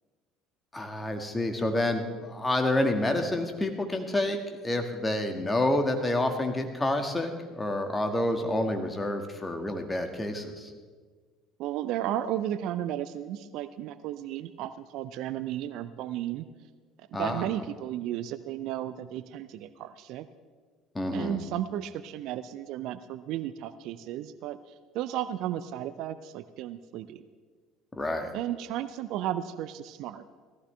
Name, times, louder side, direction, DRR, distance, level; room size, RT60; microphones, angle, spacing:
voice 1, 0.7-10.7 17.1-17.4 20.9-21.4 27.9-28.3, left 1 dB, 15° left, 5 dB, 1.9 m, -28 dB
voice 2, 11.6-16.5 17.2-20.3 21.1-24.6 24.9-27.2 28.3-30.2, right 11 dB, 60° right, 13 dB, 0.5 m, -34 dB
17.0 x 14.5 x 3.4 m, 1.5 s
hypercardioid pair, 60°, 0 cm